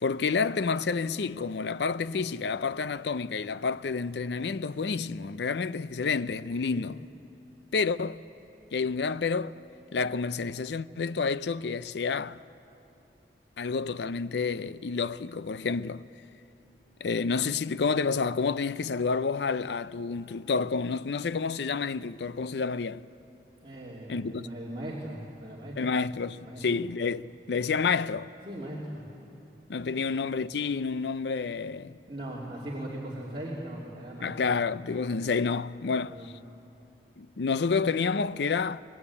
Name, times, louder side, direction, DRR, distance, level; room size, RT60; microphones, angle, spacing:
voice 1, 0.0-7.0 7.7-8.2 8.7-9.5 9.9-12.4 13.6-16.0 17.0-23.0 24.1-24.5 25.8-28.3 29.7-32.0 34.2-36.2 37.2-38.8, left 5 dB, 75° left, 0.5 m, -29 dB
voice 2, 23.6-25.7 26.4-26.6 28.5-29.0 29.8-30.1 32.1-34.7 36.0-36.3, right 1 dB, 30° right, 2.9 m, -39 dB
24.0 x 20.5 x 8.5 m
head